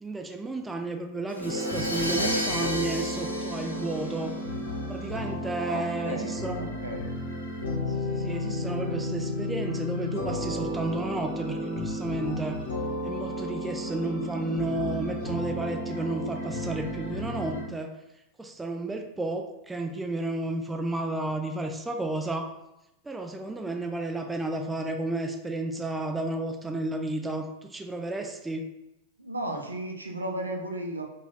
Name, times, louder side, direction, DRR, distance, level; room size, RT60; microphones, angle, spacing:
voice 1, 0.0-4.3 4.9-6.7 8.0-12.6 13.0-17.9 18.4-22.5 23.0-28.7, right 2 dB, 10° right, 4 dB, 0.4 m, -32 dB
Crash cymbal, 1.3-5.1, equal, 85° left, 0.4 m, -33 dB
sound 1, 1.4-17.6, left 1 dB, 60° left, 0.8 m, -33 dB
voice 2, 5.5-7.0 29.2-31.0, right 1 dB, 80° right, 2 dB, 0.5 m, -35 dB
3.1 x 2.3 x 3.8 m, 0.89 s
figure-of-eight pair, 90°, 0 cm